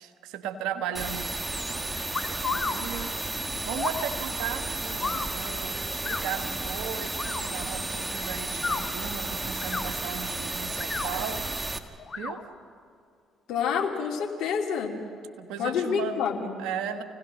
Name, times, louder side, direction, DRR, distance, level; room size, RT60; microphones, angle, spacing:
voice 1, 0.0-1.4 1.7-3.1 3.4-11.4 12.2-12.4 15.4-16.2 16.6-17.0, right 8 dB, 75° right, 7 dB, 1.4 m, -36 dB
sound 1, 0.9-11.8, right 2 dB, 20° right, 1.8 m, -33 dB
sound 2, 2.1-2.8 3.7-4.1 5.0-5.3 6.0-6.2 7.1-7.4 8.5-8.8 9.6-9.9 10.7-11.1 12.0-12.3 13.6-13.9, left 4 dB, 35° left, 1.8 m, -32 dB
voice 2, 13.5-15.0 15.6-16.5, left 7 dB, 70° left, 2 dB, 2.6 m, -28 dB
29.0 x 17.5 x 6.4 m, 2.3 s
hypercardioid pair, 55°, 0 cm